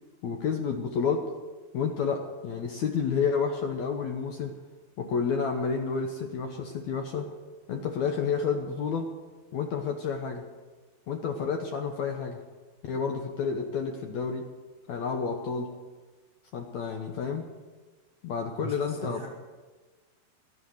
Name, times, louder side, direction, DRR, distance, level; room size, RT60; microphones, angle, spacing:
voice 1, 0.2-1.3 1.7-4.6 5.0-7.3 7.7-9.1 9.5-10.5 11.1-12.4 12.8-14.5 14.9-15.7 16.5-17.5 18.2-19.2, left 6 dB, 90° left, 3 dB, 1.6 m, -30 dB
voice 2, 18.6-19.3, right 3 dB, 50° right, -1 dB, 1.7 m, -38 dB
16.5 x 12.5 x 6.5 m, 1.3 s
omnidirectional pair, 4.7 m